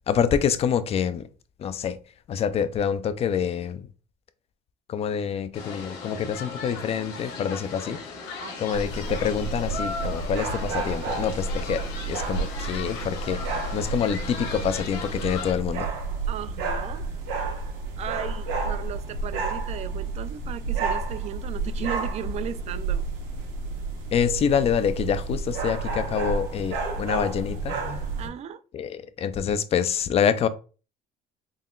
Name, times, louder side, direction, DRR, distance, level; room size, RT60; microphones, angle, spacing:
voice 1, 0.1-1.3 1.6-2.0 2.3-3.9 4.9-8.0 8.6-13.4 13.7-15.9 24.1-27.7 28.7-30.5, left 8 dB, 35° left, 0.4 m, -26 dB
sound 1, 5.5-15.5, left 4 dB, 85° left, 1.2 m, -37 dB
voice 2, 8.4-8.9 16.3-17.0 18.0-23.1 28.2-28.6, right 10 dB, 40° right, 0.4 m, -36 dB
sound 2, 8.7-28.3, right 3 dB, 90° right, 1.2 m, -31 dB
3.8 x 2.1 x 3.8 m
cardioid pair, 120°, 18 cm